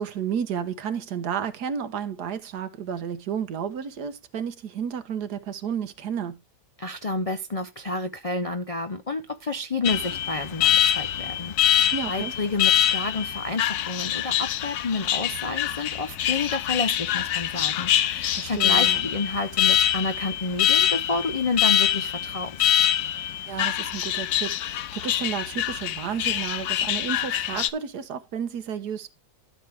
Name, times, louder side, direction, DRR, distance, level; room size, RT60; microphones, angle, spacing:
voice 1, 0.0-6.4 11.9-12.3 18.3-19.0 23.5-29.1, right 7 dB, 85° right, 1.6 m, -32 dB
voice 2, 6.8-22.7 26.3-26.4, left 3 dB, 50° left, 0.4 m, -30 dB
Alarm, 9.8-27.7, left 11 dB, 80° left, 1.2 m, -24 dB
13.0 x 6.3 x 3.4 m
omnidirectional pair, 1.7 m